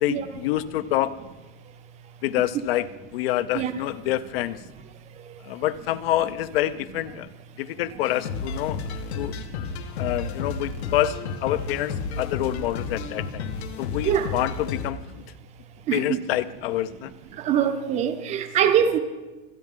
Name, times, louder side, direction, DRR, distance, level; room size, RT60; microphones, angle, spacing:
voice 1, 0.0-1.2 2.2-4.6 5.4-7.3 7.6-8.8 9.2-9.4 10.0-13.5 13.8-15.2 15.9-17.1 18.6-18.7, left 13 dB, 65° left, 0.6 m, -27 dB
sound 1, 8.0-14.9, left 5 dB, 80° left, 1.4 m, -32 dB
voice 2, 15.9-16.2 17.4-19.0, right 9 dB, 20° right, 0.5 m, -23 dB
25.5 x 9.4 x 3.7 m
supercardioid pair, 170°, 32 cm